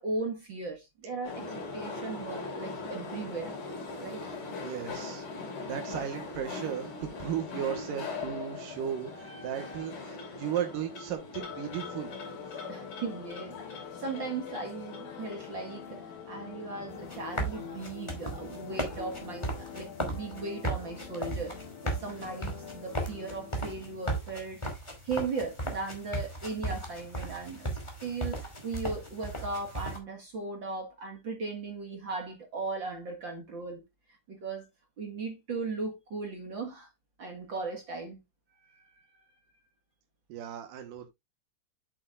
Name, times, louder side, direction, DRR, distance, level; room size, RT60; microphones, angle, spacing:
voice 1, 0.0-3.6 4.0-4.3 5.9-6.1 9.1-9.9 12.7-21.6 21.8-24.7 25.0-27.7 28.0-33.8 34.1-34.7 35.0-36.9 37.2-38.2 38.6-39.2, right 3 dB, 45° right, 1.8 m, -37 dB
sound 1, 1.2-20.3, left 3 dB, 60° left, 4.8 m, -42 dB
voice 2, 4.6-5.3 5.7-12.1 40.3-41.1, right 9 dB, 75° right, 2.8 m, -35 dB
sound 2, 11.3-24.2, left 8 dB, 85° left, 3.3 m, -45 dB
sound 3, 16.9-30.0, right 1 dB, 10° left, 2.1 m, -36 dB
8.5 x 7.8 x 2.4 m
omnidirectional pair, 4.0 m